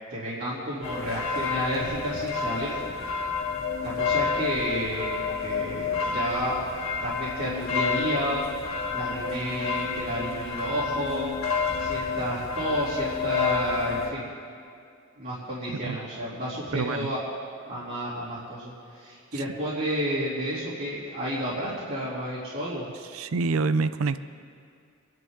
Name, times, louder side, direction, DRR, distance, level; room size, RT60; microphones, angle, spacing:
voice 1, 0.1-2.8 3.8-6.5 7.0-8.4 8.9-11.3 11.8-14.2 15.2-17.2 17.7-22.8, equal, 55° right, -9 dB, 3.1 m, -31 dB
sound 1, 0.8-14.1, left 5 dB, 85° left, 1.8 m, -29 dB
voice 2, 16.7-17.1 19.3-19.4 23.1-24.3, right 4 dB, 90° right, 13 dB, 0.5 m, -27 dB
26.5 x 11.0 x 3.7 m, 2.3 s
head